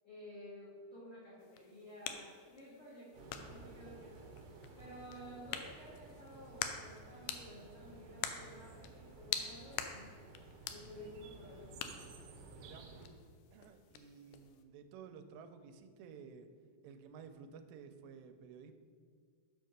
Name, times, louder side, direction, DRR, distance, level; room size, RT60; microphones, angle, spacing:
voice 1, 0.0-4.3 4.8-10.2 10.7-11.8, equal, 50° left, -9 dB, 1.7 m, -53 dB
sound 1, 1.4-14.6, left 8 dB, 90° left, 2.1 m, -47 dB
sound 2, 3.1-13.1, right 3 dB, 75° right, 2.1 m, -55 dB
voice 2, 12.6-12.9 13.5-16.5 16.8-18.7, right 6 dB, 90° right, 8 dB, 2.8 m, -53 dB
6.9 x 4.6 x 6.5 m, 2.1 s
omnidirectional pair, 4.9 m